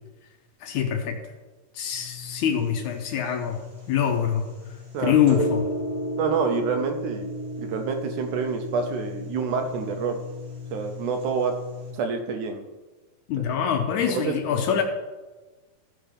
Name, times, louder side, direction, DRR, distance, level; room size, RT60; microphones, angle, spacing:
voice 1, 0.6-1.2 1.8-4.5 5.0-5.7 13.3-14.8, left 8 dB, 75° left, 5 dB, 1.9 m, -24 dB
sound 1, 1.9-11.9, left 1 dB, 35° right, 3.9 m, -34 dB
voice 2, 4.9-5.4 6.2-7.3 7.6-10.2 10.7-11.5 11.9-12.7 13.4-13.7 14.1-14.4, right 5 dB, 75° right, 5 dB, 1.9 m, -28 dB
15.0 x 5.7 x 5.2 m, 1.2 s
omnidirectional pair, 4.1 m